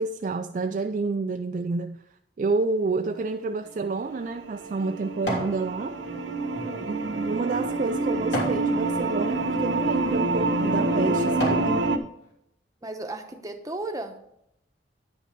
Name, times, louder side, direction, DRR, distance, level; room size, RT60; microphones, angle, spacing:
voice 1, 0.0-2.0 2.4-6.0 6.9-11.8, right 3 dB, 40° right, 6 dB, 0.3 m, -29 dB
sound 1, 3.6-12.0, right 2 dB, 80° right, 0.8 m, -27 dB
sound 2, 3.7-5.6 6.1-8.7 9.3-9.5 10.2-10.4 10.9-11.7 12.2-12.3, left 1 dB, 75° left, 2.9 m, -34 dB
voice 2, 6.5-6.9 12.8-14.2, right 2 dB, 20° right, 5 dB, 0.8 m, -35 dB
9.9 x 5.3 x 5.1 m, 0.77 s
head